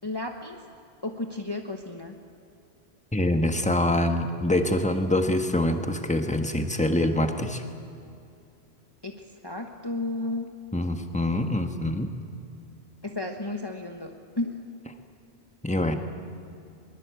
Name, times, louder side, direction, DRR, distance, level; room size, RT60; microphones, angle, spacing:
voice 1, 0.0-0.6 1.0-2.2 9.0-10.5 13.0-14.6, left 2 dB, 25° left, 3 dB, 1.2 m, -33 dB
voice 2, 3.1-7.6 10.7-12.1 15.6-16.0, left 1 dB, 5° left, 6 dB, 1.4 m, -25 dB
22.5 x 22.0 x 8.3 m, 2.5 s
omnidirectional pair, 1.1 m